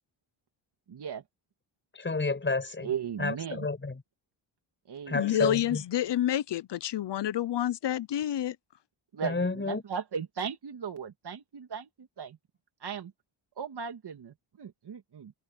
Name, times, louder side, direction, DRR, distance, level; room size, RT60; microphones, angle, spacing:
voice 1, 0.9-1.2 2.8-3.7 4.9-5.6 9.1-12.4 12.8-13.1 13.6-15.3, right 7 dB, 55° right, 2.6 m, -37 dB
voice 2, 1.9-2.9 3.2-4.0 5.1-5.8 9.2-9.8, left 3 dB, 25° left, 5.3 m, -30 dB
voice 3, 5.1-8.6, left 12 dB, 60° left, 0.8 m, -28 dB
wide cardioid pair, 125°, 47 cm